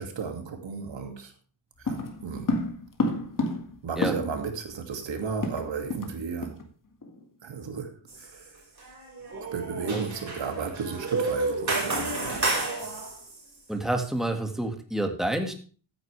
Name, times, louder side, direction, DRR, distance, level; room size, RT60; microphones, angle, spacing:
voice 1, 0.0-1.3 1.8-2.5 3.8-6.6 7.4-8.6 9.5-12.7, right 5 dB, 75° right, 2.5 m, -34 dB
sound 1, 1.9-4.5 4.8-4.9 5.1-6.2 6.4-6.6 7.0-7.2, left 2 dB, 45° left, 2.3 m, -30 dB
sound 2, 8.1-8.5 8.8-13.4, right 3 dB, 40° right, 5.4 m, -31 dB
voice 2, 13.7-15.5, right 1 dB, ahead, 1.9 m, -28 dB
14.5 x 9.7 x 3.4 m
wide cardioid pair, 105°, 44 cm